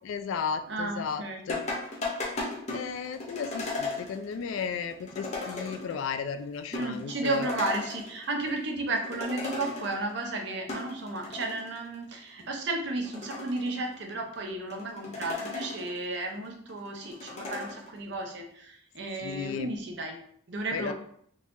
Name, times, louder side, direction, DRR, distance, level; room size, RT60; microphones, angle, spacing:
voice 1, 0.0-1.6 2.7-7.5 19.2-19.7 20.7-20.9, left 6 dB, 75° left, 9 dB, 0.3 m, -34 dB
voice 2, 0.7-1.4 6.7-20.2 20.5-20.9, right 2 dB, 55° right, 2 dB, 0.6 m, -33 dB
sound 1, 1.5-6.1 6.4-6.5 6.7-8.5 8.8-10.1 10.5-11.8 12.3-12.4 12.9-14.1 14.7-16.1 16.4-17.9, left 3 dB, 35° left, 0.6 m, -36 dB
3.9 x 2.8 x 2.5 m, 0.65 s
head